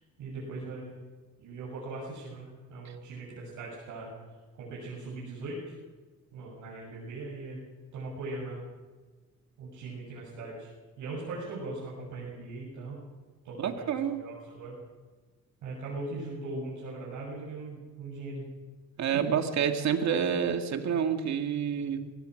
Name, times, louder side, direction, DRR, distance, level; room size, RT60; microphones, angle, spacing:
voice 1, 0.2-1.0 1.4-4.1 4.6-5.7 6.3-7.6 7.9-8.7 9.6-10.7 11.0-13.0 13.4-14.8 15.6-18.4 19.3-19.4, right 2 dB, 85° right, -6 dB, 7.9 m, -40 dB
voice 2, 13.6-14.2 19.0-22.0, right 7 dB, 65° right, 6 dB, 2.2 m, -28 dB
25.0 x 17.5 x 6.6 m, 1.3 s
cardioid pair, 90°, 30 cm